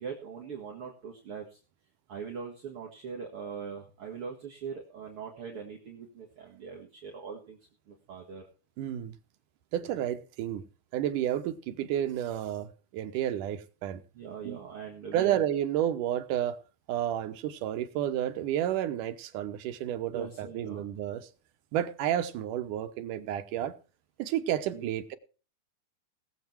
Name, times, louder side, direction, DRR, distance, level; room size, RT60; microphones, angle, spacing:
voice 1, 0.0-1.6 2.1-7.6 7.9-8.4 9.8-9.9 14.1-15.4 20.1-20.9 24.7-24.9, right 6 dB, 50° right, 2.4 m, -41 dB
voice 2, 8.8-9.1 9.7-10.6 10.9-14.0 14.4-14.6 15.1-16.6 16.9-21.3 21.7-23.7 24.2-25.2, right 11 dB, 85° right, 2.6 m, -31 dB
19.0 x 7.5 x 4.5 m
omnidirectional pair, 3.6 m